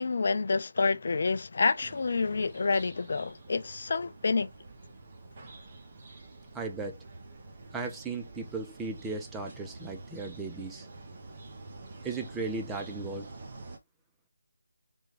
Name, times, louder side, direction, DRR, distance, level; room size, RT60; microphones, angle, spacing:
voice 1, 0.0-4.5, left 4 dB, 50° left, 0.4 m, -28 dB
sound 1, 1.7-13.8, right 3 dB, 35° right, 0.8 m, -48 dB
voice 2, 6.5-7.0 7.7-10.9 12.0-13.3, right 3 dB, 5° right, 0.5 m, -36 dB
3.5 x 2.2 x 3.1 m
figure-of-eight pair, 170°, 0 cm